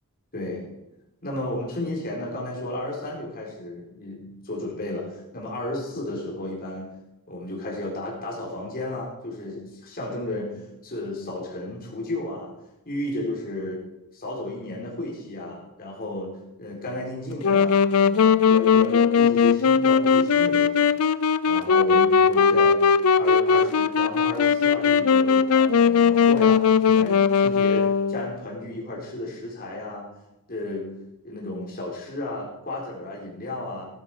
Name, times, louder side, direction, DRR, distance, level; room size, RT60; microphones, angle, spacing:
voice 1, 0.3-0.7 1.2-6.9 7.3-12.5 12.9-13.8 14.1-16.3 16.6-20.9 21.4-22.8 23.1-30.1 30.5-30.9 31.2-33.9, left 1 dB, 45° left, -3 dB, 4.1 m, -33 dB
Wind instrument woodwind instrument, 17.4-28.3, left 6 dB, 70° left, 0.5 m, -19 dB
14.0 x 12.0 x 4.8 m, 0.92 s
head